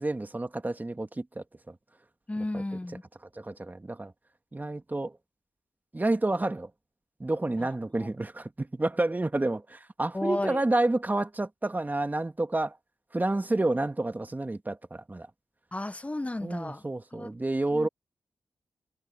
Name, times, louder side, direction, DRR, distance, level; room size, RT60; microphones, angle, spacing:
voice 1, 0.0-1.7 2.5-2.6 3.4-4.1 4.5-5.2 5.9-6.7 7.2-12.8 13.1-15.3 16.4-17.9, right 2 dB, 25° right, 2.1 m, -29 dB
voice 2, 2.3-3.0 7.6-7.7 10.1-10.6 15.7-16.8 17.1-17.3 17.7-17.9, left 2 dB, 20° left, 1.3 m, -33 dB
cardioid pair, 50°, 7 cm